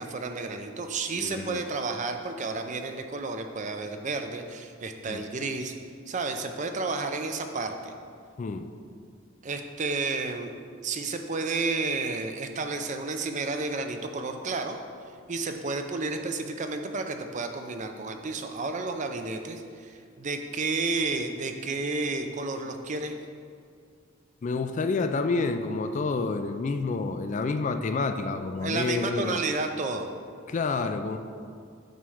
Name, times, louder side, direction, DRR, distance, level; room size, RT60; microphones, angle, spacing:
voice 1, 0.0-5.7 6.1-7.9 9.4-14.8 15.3-23.2 28.6-30.1, right 3 dB, 35° right, 6 dB, 0.5 m, -31 dB
voice 2, 1.1-1.6 5.1-5.2 8.4-8.7 24.4-29.4 30.5-31.2, left 3 dB, 35° left, 8 dB, 0.3 m, -29 dB
9.1 x 3.2 x 6.3 m, 2.3 s
head